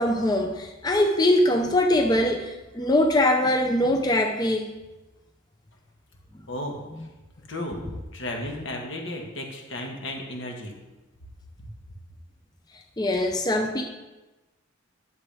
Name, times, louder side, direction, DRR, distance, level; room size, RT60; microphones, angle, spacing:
voice 1, 0.0-4.7 13.0-13.8, left 1 dB, 20° left, 3 dB, 0.5 m, -22 dB
voice 2, 8.1-10.7, left 1 dB, 65° left, 1 dB, 1.7 m, -33 dB
11.0 x 7.0 x 3.5 m, 1.1 s
head